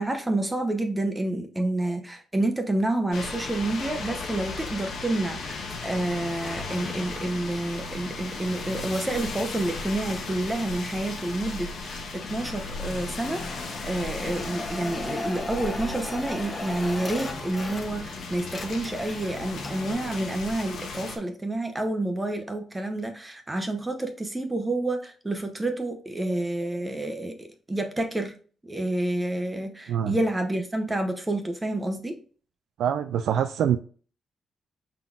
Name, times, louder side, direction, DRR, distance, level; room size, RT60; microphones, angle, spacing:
voice 1, 0.0-28.3 28.6-32.1, right 1 dB, 10° right, 0.7 m, -29 dB
sound 1, 3.1-21.2, left 3 dB, 60° left, 1.1 m, -36 dB
sound 2, 13.2-18.1 18.4-19.9, left 2 dB, 20° left, 0.8 m, -37 dB
voice 2, 32.8-33.8, right 9 dB, 80° right, 0.4 m, -24 dB
5.5 x 3.9 x 2.4 m
cardioid pair, 150°, 0 cm